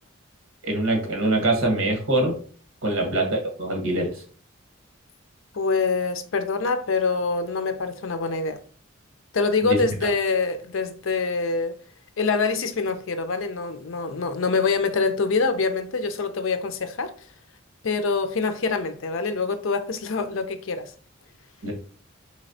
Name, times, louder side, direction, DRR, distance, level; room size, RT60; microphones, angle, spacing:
voice 1, 0.6-2.4 2.8-4.2 9.6-9.8 21.6-21.7, right 2 dB, 85° right, 1.2 m, -24 dB
voice 2, 5.5-8.6 9.3-11.7 12.2-17.1 17.8-20.9, left 4 dB, 75° left, 0.5 m, -25 dB
4.0 x 3.1 x 2.7 m
head